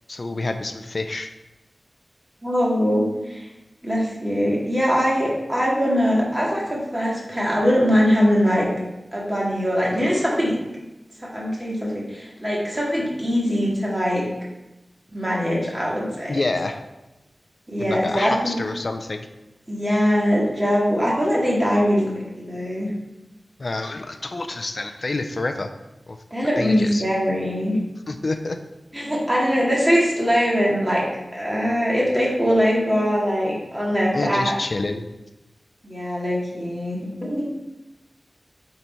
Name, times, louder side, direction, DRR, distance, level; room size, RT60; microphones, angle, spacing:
voice 1, 0.1-1.3 16.3-16.8 17.8-19.3 23.6-25.7 26.1-26.2 26.6-27.0 28.1-28.6 34.1-35.1, left 2 dB, 55° left, 7 dB, 0.5 m, -27 dB
voice 2, 2.4-3.5 3.8-8.7 9.1-10.6 11.2-14.3 15.1-16.4 17.7-18.6 19.7-22.9 26.3-27.8 28.9-31.1 31.3-34.5 35.8-37.5, equal, 15° right, -5 dB, 2.2 m, -22 dB
8.0 x 4.2 x 4.4 m, 0.99 s
wide cardioid pair, 85°, 0 cm